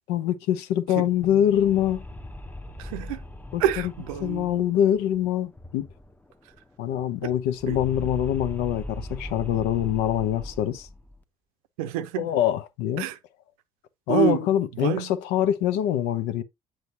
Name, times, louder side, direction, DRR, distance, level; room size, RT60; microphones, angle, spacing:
voice 1, 0.1-2.0 3.5-3.6 4.2-5.9 6.8-10.9 12.2-13.0 14.1-16.4, left 11 dB, 70° left, 0.7 m, -24 dB
sound 1, 1.1-6.3 6.5-6.6 6.9-11.2, equal, 10° left, 0.8 m, -40 dB
voice 2, 2.8-3.2 3.6-4.5 7.2-7.3 7.7-7.8 11.8-12.3 13.0-13.2 14.1-14.5 14.7-15.1, right 12 dB, 80° right, 0.6 m, -27 dB
7.7 x 6.2 x 2.7 m
hypercardioid pair, 50°, 18 cm